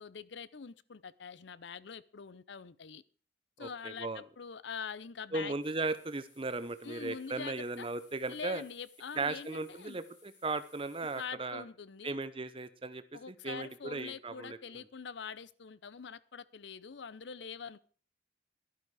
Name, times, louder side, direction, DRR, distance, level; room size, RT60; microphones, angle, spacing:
voice 1, 0.0-3.0 3.6-5.5 6.8-7.9 8.3-10.0 11.1-12.2 13.1-17.8, left 6 dB, 65° left, 0.6 m, -44 dB
voice 2, 3.6-4.2 5.3-8.6 9.1-11.6 12.0-14.6, right 3 dB, 30° right, 0.8 m, -37 dB
sound 1, 5.6-11.2, left 4 dB, 90° left, 5.1 m, -63 dB
12.0 x 12.0 x 4.8 m
head